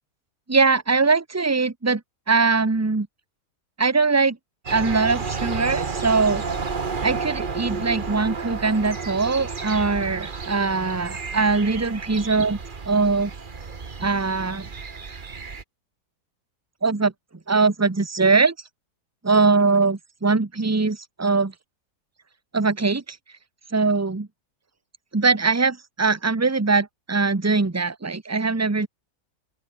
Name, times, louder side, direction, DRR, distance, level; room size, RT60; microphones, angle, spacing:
voice 1, 0.5-2.0 2.3-3.1 3.8-4.4 4.7-6.4 7.0-12.6 12.9-13.3 14.0-14.7 16.8-17.1 17.5-18.5 19.2-21.5 22.5-23.2 23.7-24.3 25.1-28.9, right 4 dB, 15° right, 0.7 m, -21 dB
sound 1, 4.7-15.6, right 5 dB, 35° right, 1.4 m, -31 dB
open air
omnidirectional pair, 1.7 m